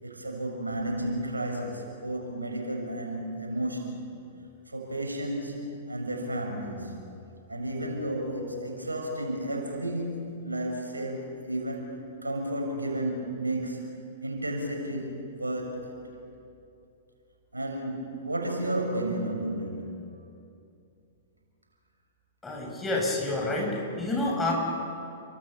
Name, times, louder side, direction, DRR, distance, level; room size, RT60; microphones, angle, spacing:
voice 1, 0.0-4.0 4.7-6.9 7.5-13.8 14.2-16.0 17.5-20.0, right 1 dB, 85° right, 2 dB, 6.5 m, -32 dB
voice 2, 22.4-24.5, left 2 dB, 10° left, -1 dB, 7.7 m, -28 dB
29.5 x 25.0 x 7.0 m, 2.6 s
figure-of-eight pair, 105°, 0 cm